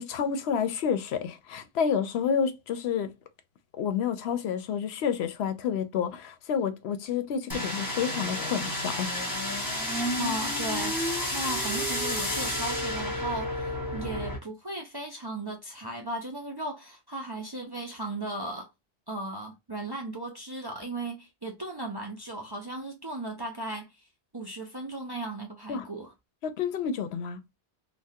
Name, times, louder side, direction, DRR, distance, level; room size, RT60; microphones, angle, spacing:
voice 1, 0.0-3.1 3.8-9.4 25.7-25.9 26.4-27.4, left 7 dB, 80° left, 0.8 m, -29 dB
sound 1, 7.5-14.4, left 1 dB, 20° left, 1.2 m, -31 dB
voice 2, 10.2-11.0 11.3-18.7 19.1-23.9 24.3-26.1, right 2 dB, 35° right, 0.4 m, -36 dB
3.5 x 2.2 x 2.7 m
omnidirectional pair, 1.1 m